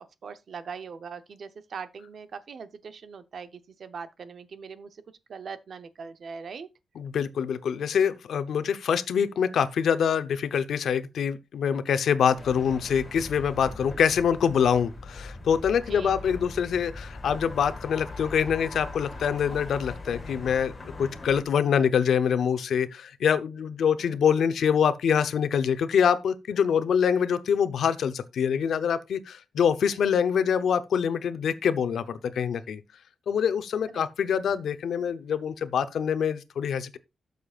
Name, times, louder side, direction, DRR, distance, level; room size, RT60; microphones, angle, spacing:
voice 1, 0.0-5.0 5.3-6.7 15.9-16.2 24.0-24.2 33.9-34.1, right 5 dB, 55° right, 0.8 m, -41 dB
voice 2, 7.0-20.7 21.0-32.8 33.3-37.0, left 7 dB, 85° left, 0.7 m, -25 dB
sound 1, 12.4-21.4, left 2 dB, 25° left, 2.0 m, -40 dB
12.5 x 6.7 x 2.4 m
wide cardioid pair, 150°, 0 cm